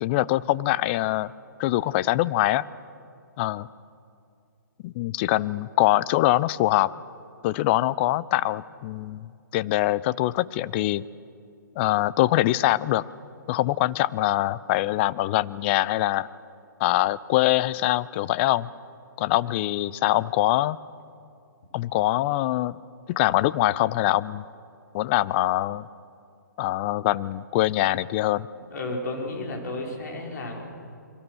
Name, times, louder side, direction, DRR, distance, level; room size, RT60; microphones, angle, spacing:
voice 1, 0.0-1.3 1.6-2.6 3.4-3.7 4.8-6.9 7.4-11.0 11.8-13.0 13.5-16.3 16.8-18.7 19.2-20.8 21.7-22.8 23.1-24.4 24.9-25.9 26.6-28.5, left 16 dB, 35° left, 19 dB, 0.6 m, -23 dB
voice 2, 28.5-30.6, left 2 dB, 60° left, 0 dB, 5.5 m, -33 dB
29.0 x 23.5 x 6.4 m, 2.5 s
figure-of-eight pair, 130°, 10 cm